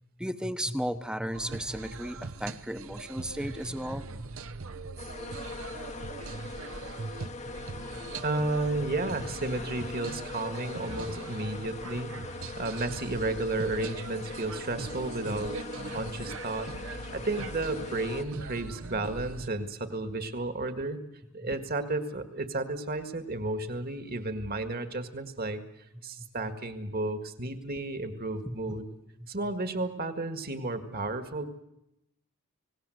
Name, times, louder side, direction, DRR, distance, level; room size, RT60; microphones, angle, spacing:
voice 1, 0.2-4.1 7.9-8.0 12.4-12.5 21.4-21.5 26.2-26.3 28.4-28.8 29.2-29.3, equal, 5° right, 11 dB, 0.9 m, -35 dB
sound 1, 1.3-19.5, right 4 dB, 65° right, 0.9 m, -42 dB
sound 2, 5.0-18.2, left 3 dB, 30° left, 0.9 m, -41 dB
voice 2, 8.2-15.6 15.8-21.0 21.3-25.6 26.0-28.8 29.3-31.5, right 2 dB, 45° right, 9 dB, 1.9 m, -33 dB
29.0 x 18.0 x 7.9 m, 0.89 s
head